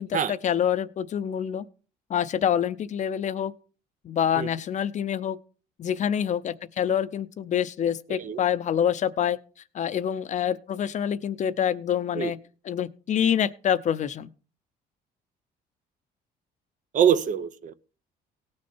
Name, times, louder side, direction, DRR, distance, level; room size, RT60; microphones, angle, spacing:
voice 1, 0.0-1.6 2.1-3.5 4.0-5.4 5.8-9.4 9.7-12.4 12.6-14.3, left 9 dB, 45° left, 13 dB, 0.7 m, -26 dB
voice 2, 16.9-17.7, right 9 dB, 50° right, 13 dB, 0.7 m, -24 dB
17.5 x 6.4 x 4.4 m, 0.38 s
cardioid pair, 110°, 17 cm